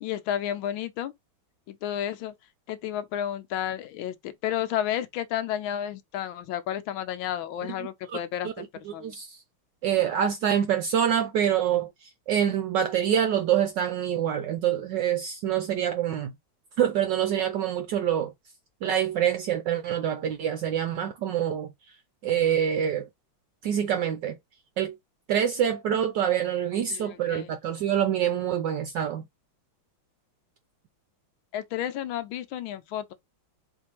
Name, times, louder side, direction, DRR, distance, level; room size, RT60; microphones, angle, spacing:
voice 1, 0.0-1.1 1.7-2.3 2.7-9.1 26.9-27.5 31.5-33.1, left 10 dB, 75° left, 1.4 m, -32 dB
voice 2, 8.6-9.4 9.8-16.3 16.8-18.3 18.8-21.7 22.2-23.1 23.6-24.4 24.8-24.9 25.3-29.2, right 9 dB, 70° right, 1.2 m, -26 dB
4.4 x 3.3 x 2.9 m
omnidirectional pair, 2.2 m